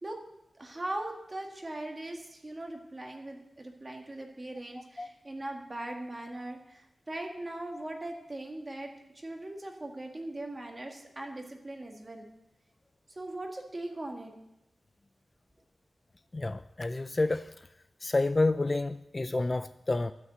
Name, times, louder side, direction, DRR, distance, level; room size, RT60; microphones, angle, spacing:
voice 1, 0.6-8.9 9.2-12.3 13.1-14.3, right 1 dB, 25° right, 2 dB, 1.8 m, -40 dB
voice 2, 16.3-17.5 18.0-20.1, left 2 dB, 30° left, 12 dB, 0.3 m, -29 dB
12.5 x 6.5 x 7.9 m, 0.89 s
wide cardioid pair, 130°, 0 cm